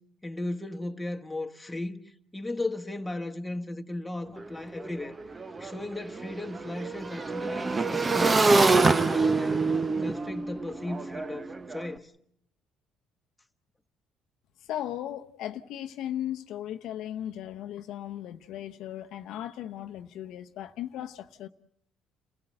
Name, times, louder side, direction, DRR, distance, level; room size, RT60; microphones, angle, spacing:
voice 1, 0.2-2.0 2.3-5.2 5.6-9.6 10.0-12.1, left 2 dB, 5° left, 1.6 m, -36 dB
Motorcycle / Engine, 4.4-4.5 4.7-11.9, right 3 dB, 25° right, 0.9 m, -26 dB
voice 2, 14.6-21.5, left 11 dB, 75° left, 0.9 m, -37 dB
29.5 x 16.0 x 7.9 m
cardioid pair, 100°, 0 cm